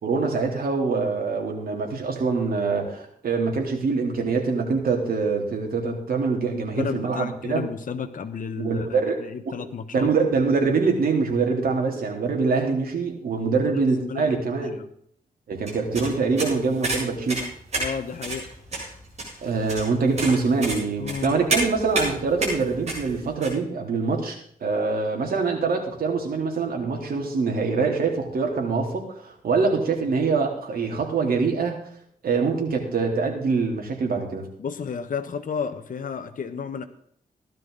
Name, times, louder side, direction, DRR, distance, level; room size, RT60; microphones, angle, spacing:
voice 1, 0.0-7.6 8.6-9.2 9.5-9.6 9.9-14.7 15.5-17.5 19.4-31.8 32.2-34.5, right 4 dB, 75° right, 2 dB, 3.6 m, -24 dB
voice 2, 6.7-10.1 13.4-14.9 17.8-18.5 21.0-21.4 34.6-36.8, left 6 dB, 60° left, 7 dB, 1.3 m, -32 dB
sound 1, 15.7-23.5, right 2 dB, 45° right, 8.0 m, -30 dB
16.5 x 12.0 x 4.1 m, 0.63 s
wide cardioid pair, 110°, 16 cm